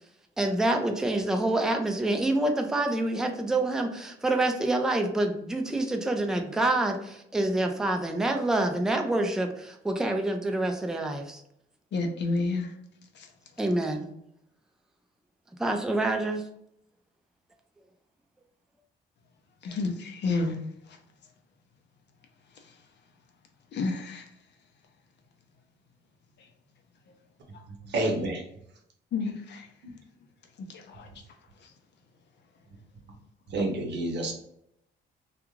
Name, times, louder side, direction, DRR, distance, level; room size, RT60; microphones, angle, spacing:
voice 1, 0.4-11.4 13.6-14.1 15.6-16.4, right 2 dB, 5° right, 3 dB, 0.4 m, -27 dB
voice 2, 11.9-12.7 13.1-13.3 19.6-20.6 20.9-21.0 23.7-24.3 29.1-29.7 30.7-31.1 31.6-31.7, left 3 dB, 60° left, 4 dB, 0.6 m, -30 dB
voice 3, 27.8-28.4 33.5-34.3, right 2 dB, 60° right, 2 dB, 0.8 m, -28 dB
2.4 x 2.3 x 3.0 m, 0.75 s
cardioid pair, 90°, 20 cm